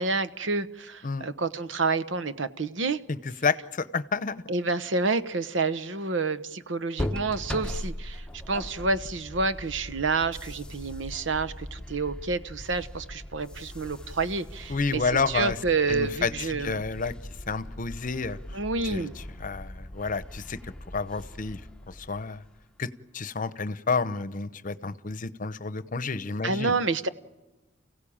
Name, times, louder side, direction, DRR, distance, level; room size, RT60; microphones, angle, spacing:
voice 1, 0.0-3.0 4.5-16.8 18.5-19.1 26.4-27.1, right 3 dB, 85° right, 1.0 m, -29 dB
voice 2, 3.1-4.4 14.7-15.6 15.9-17.1 17.5-21.6 21.9-22.4 22.8-22.9 23.1-26.8, left 4 dB, 45° left, 0.8 m, -30 dB
sound 1, 7.0-22.7, left 1 dB, 5° left, 0.9 m, -40 dB
30.0 x 16.5 x 8.7 m
head